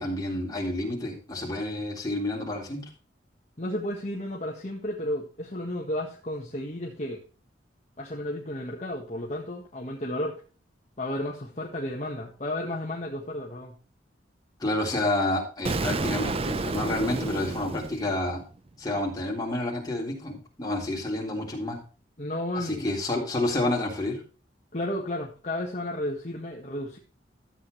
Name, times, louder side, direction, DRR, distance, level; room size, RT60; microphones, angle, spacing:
voice 1, 0.0-2.8 14.6-18.4 18.8-21.8 22.5-24.2, left 1 dB, 20° left, -2 dB, 3.5 m, -29 dB
voice 2, 3.6-7.2 8.0-10.4 11.0-13.8 22.2-22.9 24.7-27.0, left 1 dB, 40° left, -1 dB, 1.5 m, -33 dB
Explosion, 15.6-18.6, right 3 dB, 30° right, 0.5 m, -30 dB
13.0 x 8.1 x 3.2 m, 0.36 s
head